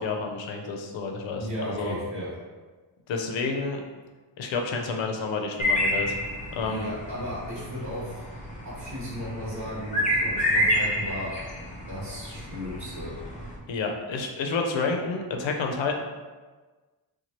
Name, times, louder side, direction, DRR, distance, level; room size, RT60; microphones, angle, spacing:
voice 1, 0.0-1.9 3.1-3.8 4.4-6.1 6.5-6.9 13.7-16.0, left 4 dB, 75° left, 2 dB, 0.6 m, -29 dB
voice 2, 1.4-2.3 6.6-8.2 8.6-11.3 11.9-13.1, equal, 40° right, -9 dB, 1.1 m, -35 dB
sound 1, 5.6-13.6, equal, 15° left, 0.6 m, -29 dB
3.0 x 2.2 x 2.8 m, 1.3 s
cardioid pair, 75°, 47 cm